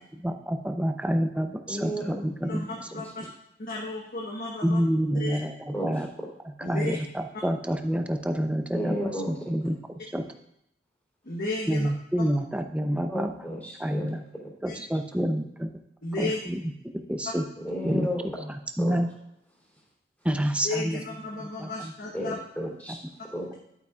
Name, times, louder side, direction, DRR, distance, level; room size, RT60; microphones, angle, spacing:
voice 1, 0.2-1.9 2.2-2.7 4.6-6.1 6.6-9.0 9.3-9.8 10.1-10.2 11.7-13.3 13.8-14.2 14.6-15.7 16.2-17.4 17.8-18.1 18.8-19.1 20.2-21.0 21.4-21.9 22.9-23.0, equal, 5° right, 6 dB, 0.6 m, -28 dB
voice 2, 1.7-2.2 2.9-3.0 5.7-6.0 8.7-9.5 13.1-14.1 17.6-18.5 18.8-19.0 22.1-23.0 23.3-23.5, equal, 10° left, -5 dB, 3.1 m, -33 dB
voice 3, 2.4-3.3 3.6-4.8 5.1-5.4 6.6-7.0 11.2-11.9 12.2-12.3 14.7-14.8 16.0-16.4 20.6-22.4, left 2 dB, 50° left, -2 dB, 1.2 m, -33 dB
11.0 x 9.1 x 2.4 m, 0.80 s
head